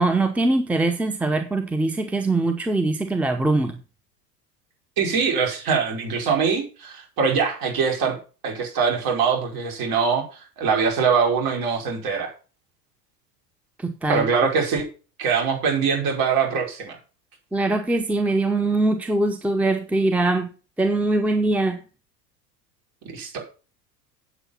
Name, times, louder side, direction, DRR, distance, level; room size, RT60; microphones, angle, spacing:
voice 1, 0.0-3.8 13.8-14.3 17.5-20.5 20.8-21.8, right 2 dB, 5° right, 0.9 m, -22 dB
voice 2, 5.0-8.2 8.4-12.3 14.1-14.9 15.2-17.0 23.1-23.4, right 5 dB, 45° right, 5.2 m, -23 dB
8.3 x 8.2 x 5.5 m
hypercardioid pair, 90°, 49 cm